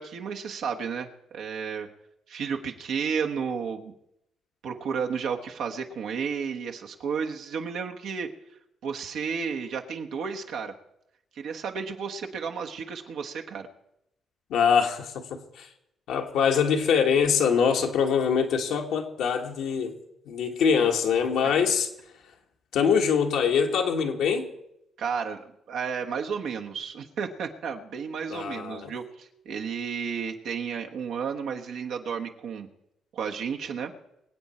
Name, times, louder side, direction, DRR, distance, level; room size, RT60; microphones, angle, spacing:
voice 1, 0.0-1.9 2.3-3.9 4.6-8.3 8.8-10.7 11.4-13.7 25.0-32.7 33.1-33.9, right 6 dB, 75° right, 3 dB, 1.4 m, -32 dB
voice 2, 14.5-15.7 16.1-20.0 20.3-21.9 22.7-24.5 28.3-28.9, left 6 dB, 80° left, 3 dB, 1.6 m, -24 dB
24.0 x 8.3 x 4.4 m, 0.82 s
cardioid pair, 90°, 0 cm